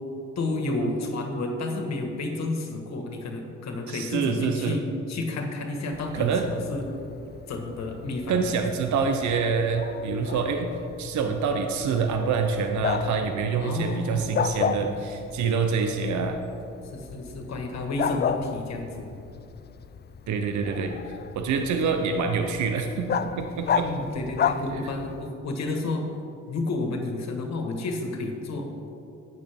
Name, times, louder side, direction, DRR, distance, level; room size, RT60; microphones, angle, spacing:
voice 1, 0.3-6.9 7.5-8.6 13.6-14.4 16.9-19.2 21.8-21.9 23.8-26.0 26.5-28.7, left 2 dB, 60° left, 3 dB, 1.6 m, -31 dB
voice 2, 3.9-4.8 6.1-6.5 8.3-16.4 20.3-20.9 21.3-23.9 24.7-24.8, right 5 dB, 70° right, 5 dB, 0.8 m, -26 dB
Bark, 5.9-25.3, left 7 dB, 35° left, 0.4 m, -34 dB
11.5 x 8.9 x 3.6 m, 2.7 s
cardioid pair, 90°, 30 cm